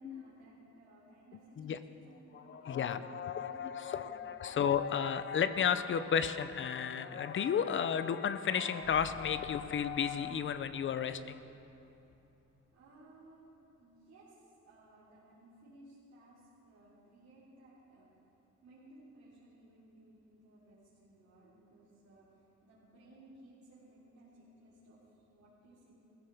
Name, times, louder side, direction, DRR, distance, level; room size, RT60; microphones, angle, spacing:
voice 1, 0.0-4.6 12.7-13.5 13.8-18.2 18.6-25.9, right 1 dB, 65° right, -11 dB, 3.7 m, -59 dB
voice 2, 2.3-11.4, left 7 dB, 40° left, 12 dB, 0.6 m, -33 dB
sound 1, 8.8-13.1, left 2 dB, 30° right, 3.8 m, -55 dB
19.5 x 15.5 x 3.5 m, 2.9 s
cardioid pair, 150°, 30 cm